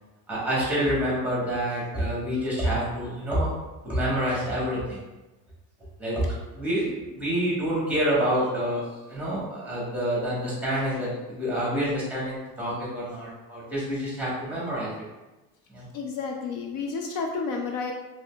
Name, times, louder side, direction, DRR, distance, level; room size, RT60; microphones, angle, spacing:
voice 1, 0.3-3.5 3.8-5.0 6.0-6.2 6.5-8.8 9.1-14.9 15.7-15.8, equal, 5° right, -7 dB, 1.1 m, -27 dB
voice 2, 15.9-17.9, left 4 dB, 60° left, 2 dB, 0.4 m, -31 dB
3.7 x 3.0 x 2.2 m, 1.1 s
cardioid pair, 155°, 36 cm